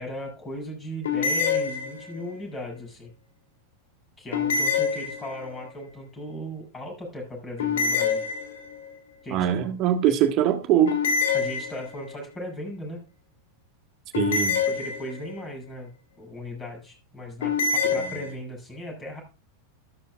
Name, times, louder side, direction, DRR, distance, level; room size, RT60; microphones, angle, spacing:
voice 1, 0.0-3.1 4.2-8.3 9.2-9.5 10.1-10.2 11.3-13.0 14.7-19.2, equal, 15° left, 1 dB, 7.6 m, -37 dB
sound 1, 1.0-2.3 4.3-5.6 7.6-8.9 10.9-12.2 14.1-15.4 17.4-18.3, left 5 dB, 60° left, 2.4 m, -26 dB
voice 2, 9.3-11.0 14.2-14.6 17.8-18.2, right 10 dB, 40° right, 7 dB, 1.7 m, -23 dB
13.0 x 13.0 x 2.5 m, 0.32 s
figure-of-eight pair, 90°, 0 cm